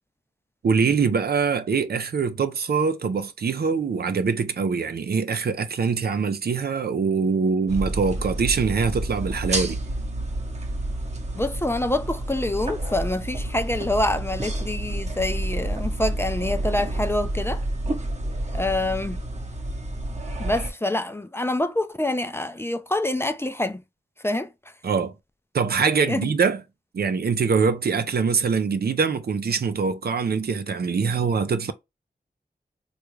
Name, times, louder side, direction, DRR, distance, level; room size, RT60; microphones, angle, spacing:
voice 1, 0.6-9.8 24.8-25.1 25.5-26.6 26.9-31.7, right 5 dB, 70° right, 0.5 m, -23 dB
sound 1, 7.7-20.7, right 1 dB, 40° right, 0.8 m, -29 dB
voice 2, 11.3-17.6 18.5-19.2 20.4-23.8 24.2-24.5 26.1-26.3, left 1 dB, 15° left, 0.4 m, -26 dB
3.4 x 2.4 x 3.1 m
wide cardioid pair, 70°, 17 cm